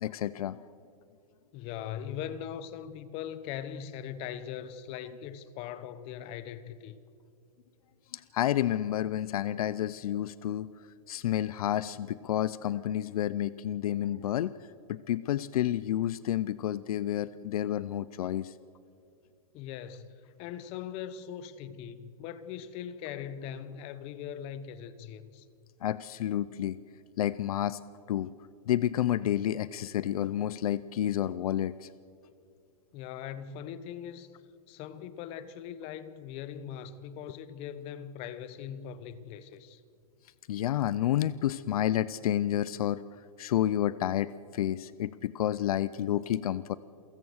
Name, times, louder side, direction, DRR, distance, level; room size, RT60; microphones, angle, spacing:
voice 1, 0.0-0.6 8.3-10.7 11.1-14.5 14.9-18.5 25.8-26.8 27.2-27.8 28.1-28.3 28.7-31.9 40.5-43.0 43.4-46.8, left 12 dB, 75° left, 0.6 m, -30 dB
voice 2, 1.5-7.0 19.5-25.5 32.9-34.3 34.7-39.8, left 9 dB, 30° left, 1.0 m, -40 dB
28.0 x 16.5 x 6.4 m
supercardioid pair, 155°, 19 cm